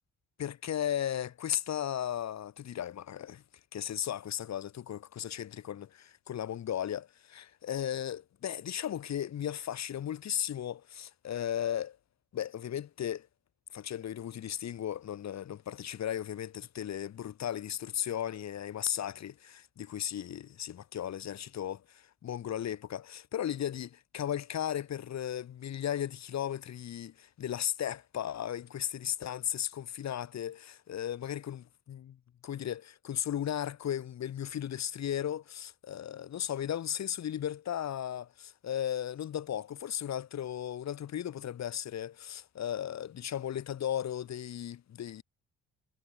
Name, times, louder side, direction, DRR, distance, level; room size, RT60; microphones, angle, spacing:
voice 1, 0.4-3.4 3.7-12.0 12.3-13.3 13.7-32.2 32.4-45.2, left 10 dB, 60° left, 2.9 m, -36 dB
cardioid pair, 90°, 30 cm